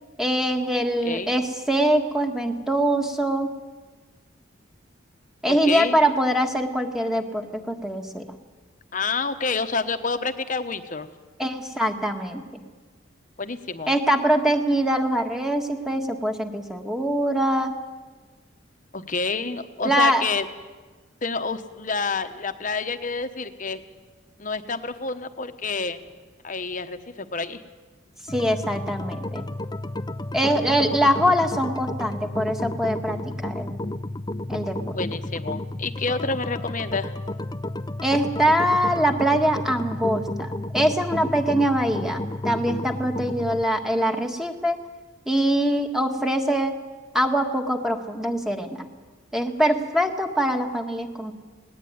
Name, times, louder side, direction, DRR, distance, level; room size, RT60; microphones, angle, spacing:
voice 1, 0.2-3.5 5.4-8.2 11.4-12.6 13.9-17.7 19.8-20.2 28.3-29.5 30.3-33.8 34.5-35.0 38.0-44.8 45.3-46.8 47.1-48.9 49.3-51.3, right 1 dB, ahead, 4 dB, 1.6 m, -23 dB
voice 2, 1.0-1.3 5.5-6.0 8.9-11.1 13.4-13.9 18.9-20.5 21.2-23.8 24.4-26.0 26.4-27.6 30.5-30.8 34.9-37.1, left 4 dB, 40° left, 9 dB, 1.1 m, -28 dB
sound 1, 28.3-43.6, left 1 dB, 20° left, 0.6 m, -32 dB
19.0 x 18.5 x 9.5 m, 1.3 s
head